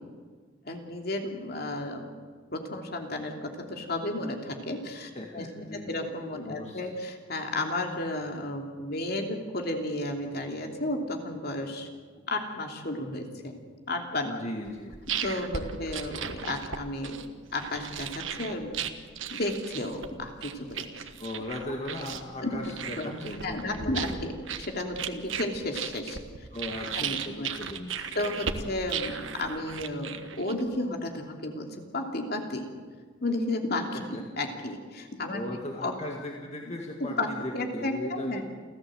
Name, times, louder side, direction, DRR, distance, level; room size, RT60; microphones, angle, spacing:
voice 1, 0.7-2.1 2.5-5.5 5.9-11.9 12.3-13.6 13.9-14.4 15.2-18.7 19.3-21.1 22.4-22.5 22.9-26.2 26.9-27.5 28.1-31.7 31.9-32.7 33.2-35.4 35.8-35.9 37.0-37.3 37.5-38.4, left 1 dB, 55° left, 3 dB, 2.9 m, -33 dB
voice 2, 5.2-6.9 14.2-14.9 15.5-15.8 21.2-24.2 26.5-28.4 33.9-34.2 35.3-38.4, left 1 dB, 35° left, 1 dB, 1.9 m, -38 dB
sound 1, 14.7-30.8, right 7 dB, 85° right, 1.4 m, -36 dB
29.0 x 14.0 x 7.8 m, 1.5 s
head